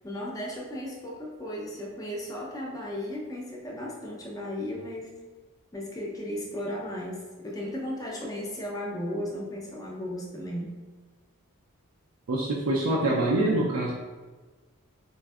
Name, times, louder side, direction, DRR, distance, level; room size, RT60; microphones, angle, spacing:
voice 1, 0.0-5.2 5.7-10.7, left 1 dB, 15° left, -2 dB, 0.5 m, -35 dB
voice 2, 12.3-13.9, right 1 dB, 75° right, -3 dB, 0.4 m, -25 dB
4.2 x 2.5 x 2.3 m, 1.3 s
head